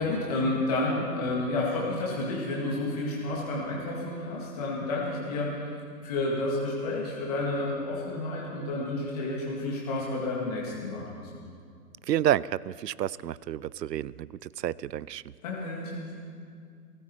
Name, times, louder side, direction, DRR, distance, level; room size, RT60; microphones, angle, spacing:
voice 1, 0.0-5.5 6.0-11.4 15.4-16.1, left 2 dB, 25° left, -4 dB, 2.1 m, -30 dB
voice 2, 12.1-15.2, right 11 dB, 80° right, 21 dB, 0.6 m, -29 dB
20.0 x 14.0 x 4.4 m, 2.2 s
hypercardioid pair, 170°, 49 cm